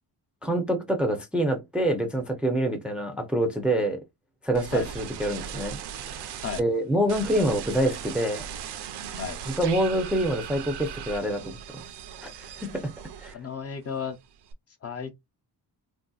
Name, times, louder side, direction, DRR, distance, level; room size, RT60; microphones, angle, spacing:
voice 1, 0.4-4.0 4.4-5.8 6.1-6.3 6.6-8.5 9.6-11.5 12.2-12.9 13.2-13.4, right 1 dB, 5° right, 0.5 m, -26 dB
sound 1, 4.5-6.6 7.1-13.6 13.9-14.5, right 8 dB, 80° right, 0.7 m, -38 dB
voice 2, 13.3-14.2 14.8-15.1, left 7 dB, 40° left, 0.6 m, -33 dB
3.2 x 2.7 x 2.3 m
cardioid pair, 130°, 39 cm